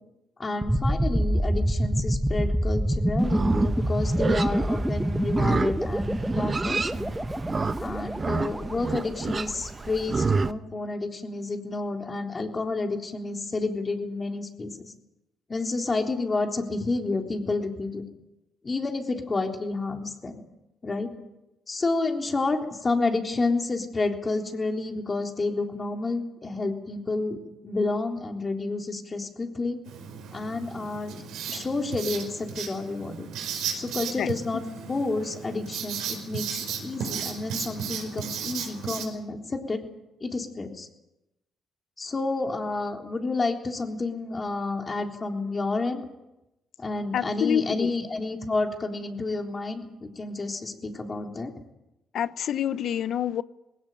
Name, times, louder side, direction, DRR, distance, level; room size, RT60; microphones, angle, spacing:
voice 1, 0.4-7.1 7.8-14.9 15.5-18.0 18.6-20.4 20.8-21.1 21.7-27.4 27.6-29.8 30.3-31.2 31.5-33.3 33.7-34.6 34.9-39.8 40.2-40.9 42.0-46.0 46.8-51.5, left 3 dB, 30° left, 3.5 m, -30 dB
sound 1, 0.6-9.5, equal, 5° right, 1.2 m, -27 dB
Livestock farm animals working animals, 3.2-10.5, right 4 dB, 35° right, 0.9 m, -29 dB
Writing, 29.8-39.1, right 7 dB, 90° right, 5.1 m, -35 dB
voice 2, 47.1-47.9 52.1-53.4, left 9 dB, 65° left, 0.9 m, -27 dB
20.0 x 17.5 x 9.2 m
cardioid pair, 90°, 0 cm